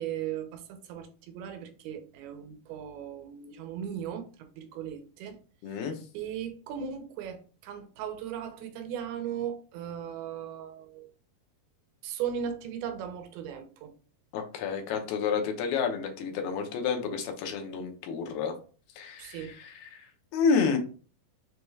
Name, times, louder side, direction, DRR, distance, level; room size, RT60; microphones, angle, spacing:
voice 1, 0.0-5.4 5.7-5.8 6.1-11.1 12.0-13.9 19.2-19.5, right 8 dB, 85° right, 2.6 m, -37 dB
voice 2, 5.6-6.0 14.3-18.5 19.0-20.8, left 5 dB, 90° left, 2.8 m, -30 dB
6.6 x 2.3 x 3.1 m
omnidirectional pair, 4.3 m